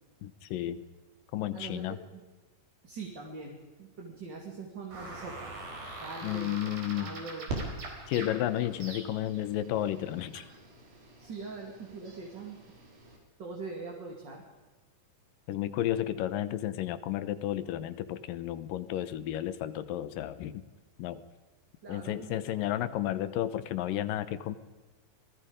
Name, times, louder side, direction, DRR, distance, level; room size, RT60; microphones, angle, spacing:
voice 1, 0.2-0.8 1.3-2.0 6.2-7.2 8.1-10.5 15.5-20.6 21.0-21.2 21.9-24.6, left 12 dB, 80° left, 13 dB, 2.6 m, -32 dB
voice 2, 1.5-2.2 2.8-5.6 6.0-7.6 11.2-12.6 13.4-14.5 21.8-22.5, right 4 dB, 35° right, 0 dB, 2.7 m, -42 dB
sound 1, 4.9-9.4, right 2 dB, 60° right, 5.8 m, -43 dB
sound 2, 7.5-13.2, right 2 dB, 80° right, 5.8 m, -44 dB
27.0 x 19.0 x 5.1 m, 1.2 s
omnidirectional pair, 4.0 m